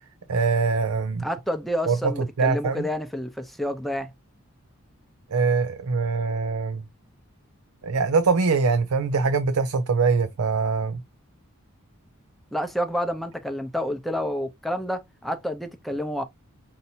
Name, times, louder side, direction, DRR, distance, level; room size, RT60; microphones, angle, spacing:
voice 1, 0.3-1.2 1.9-2.0 2.4-2.9 5.3-6.8 7.8-11.0, right 4 dB, 85° right, 0.5 m, -23 dB
voice 2, 1.2-4.1 12.5-16.2, equal, ahead, 0.6 m, -29 dB
5.5 x 2.7 x 2.7 m
head